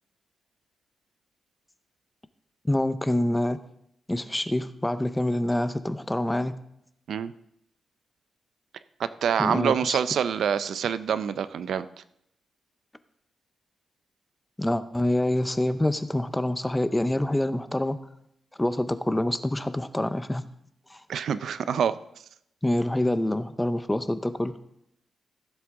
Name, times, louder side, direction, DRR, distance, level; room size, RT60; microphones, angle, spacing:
voice 1, 2.6-3.6 4.1-6.6 9.4-10.0 14.6-18.0 18.6-20.4 20.9-21.0 22.6-24.6, left 1 dB, 10° left, 12 dB, 0.6 m, -26 dB
voice 2, 9.0-11.9 21.1-21.9, right 8 dB, 75° right, 14 dB, 0.5 m, -26 dB
16.0 x 7.7 x 3.7 m, 0.76 s
wide cardioid pair, 135°, 0 cm